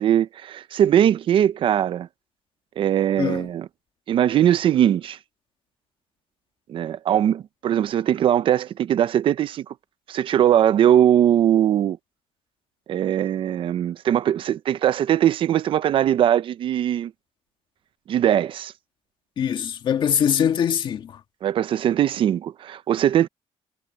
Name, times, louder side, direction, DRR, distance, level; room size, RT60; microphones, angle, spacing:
voice 1, 0.0-2.1 2.8-3.7 4.1-5.2 6.7-9.6 10.1-12.0 12.9-17.1 18.1-18.7 21.4-23.3, right 10 dB, 55° right, 0.6 m, -20 dB
voice 2, 19.4-21.1, left 8 dB, 50° left, 1.9 m, -22 dB
cardioid pair, 160°, 11 cm